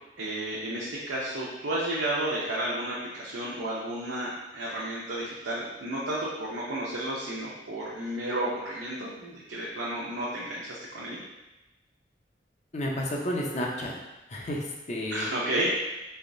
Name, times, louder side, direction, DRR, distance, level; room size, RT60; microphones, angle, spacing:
voice 1, 0.2-11.2 15.1-15.9, right 1 dB, 80° right, -7 dB, 0.6 m, -32 dB
voice 2, 12.7-13.9 14.3-15.3, left 1 dB, 40° left, -1 dB, 0.5 m, -31 dB
3.4 x 3.1 x 2.6 m, 1.0 s
head